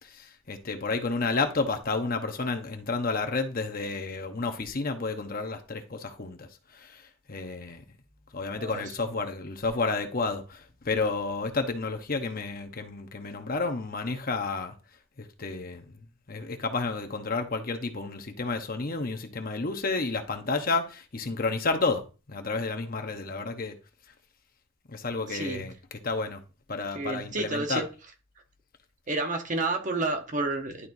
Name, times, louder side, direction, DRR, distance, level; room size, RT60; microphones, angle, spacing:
voice 1, 0.0-6.5 6.7-7.8 8.3-14.7 15.2-15.8 16.3-22.0 22.3-23.7 24.9-26.4 26.7-27.9, left 3 dB, 45° left, 0.9 m, -31 dB
voice 2, 25.3-25.6 26.9-27.9 29.1-30.9, right 2 dB, 40° right, 1.1 m, -30 dB
11.0 x 4.4 x 2.6 m
head